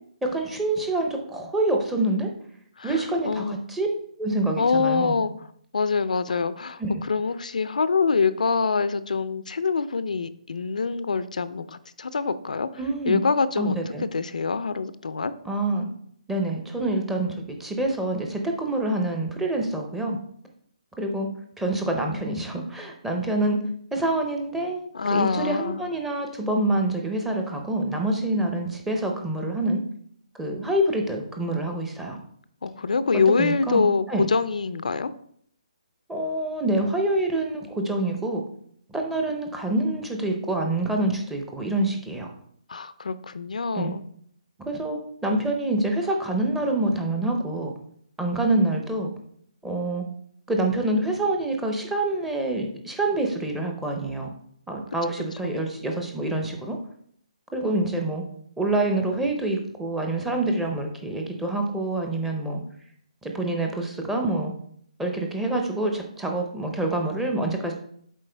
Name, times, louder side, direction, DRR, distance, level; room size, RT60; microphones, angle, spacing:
voice 1, 0.2-2.3 2.8-3.9 4.2-5.2 6.8-7.0 12.8-13.2 13.6-14.1 15.4-15.9 16.3-20.2 21.0-21.3 21.6-23.6 23.9-29.8 30.4-32.2 33.4-34.3 36.1-38.4 38.9-42.3 43.7-43.9 44.6-47.7 48.2-49.1 49.6-50.0 50.5-54.3 54.7-56.8 57.5-58.2 58.6-62.6 63.2-64.5 65.0-67.7, right 2 dB, 5° right, 2 dB, 0.6 m, -26 dB
voice 2, 2.8-3.6 4.6-5.3 5.7-12.7 13.1-15.3 24.9-25.8 32.6-35.1 42.7-44.0 55.4-55.7, left 4 dB, 85° left, 14 dB, 0.5 m, -25 dB
7.5 x 4.5 x 3.4 m, 0.64 s
hypercardioid pair, 165°, 4 cm